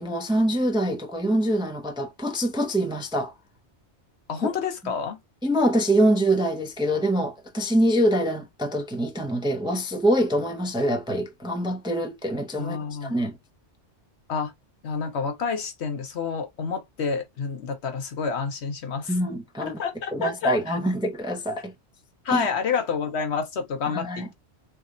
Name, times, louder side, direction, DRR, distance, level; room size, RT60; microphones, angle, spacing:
voice 1, 0.0-3.3 5.4-13.4 19.1-19.8 20.1-21.7 22.3-22.5 23.9-24.3, right 1 dB, 5° right, 0.5 m, -24 dB
voice 2, 4.3-5.2 12.6-13.2 14.3-14.5 14.8-19.2 19.6-20.8 22.2-24.3, left 5 dB, 65° left, 1.1 m, -29 dB
4.0 x 3.4 x 2.4 m
omnidirectional pair, 1.2 m